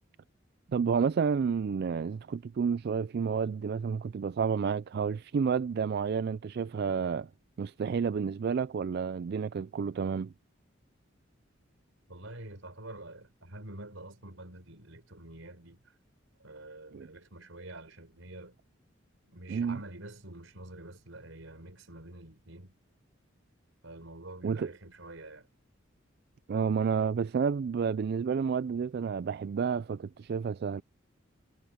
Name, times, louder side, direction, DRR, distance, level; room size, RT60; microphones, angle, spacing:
voice 1, 0.7-7.3 7.6-10.3 16.9-17.1 19.5-19.8 24.4-24.7 26.5-30.8, right 6 dB, 55° right, 0.3 m, -30 dB
voice 2, 12.1-15.9 16.4-18.6 19.3-22.7 23.8-25.5, right 2 dB, 80° right, 4.2 m, -47 dB
head